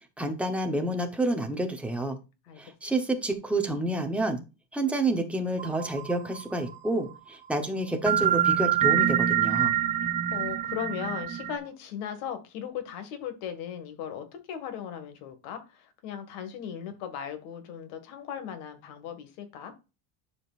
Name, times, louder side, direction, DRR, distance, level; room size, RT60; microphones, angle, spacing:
voice 1, 0.2-2.2 2.6-4.4 4.7-9.7, right 1 dB, 5° right, 4 dB, 0.9 m, -29 dB
sound 1, 5.6-6.9 8.1-11.6, right 10 dB, 20° right, 0.5 m, -26 dB
voice 2, 10.0-19.7, left 8 dB, 75° left, 8 dB, 1.9 m, -38 dB
11.0 x 5.1 x 2.5 m, 0.29 s
cardioid pair, 165°, 38 cm